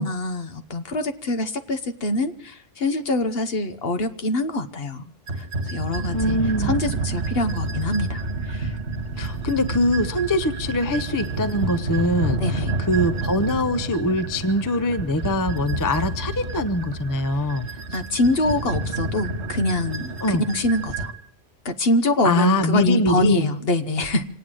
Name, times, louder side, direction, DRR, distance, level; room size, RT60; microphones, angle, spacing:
voice 1, 0.0-8.8 12.3-12.7 17.9-21.1 21.6-24.2, left 1 dB, 55° left, 8 dB, 1.2 m, -24 dB
sound 1, 5.3-21.1, right 3 dB, 70° right, 1.8 m, -29 dB
voice 2, 6.1-6.7 9.2-17.7 20.2-20.4 22.2-23.5, left 1 dB, 20° left, 11 dB, 0.6 m, -23 dB
26.0 x 9.0 x 6.3 m, 0.69 s
omnidirectional pair, 1.2 m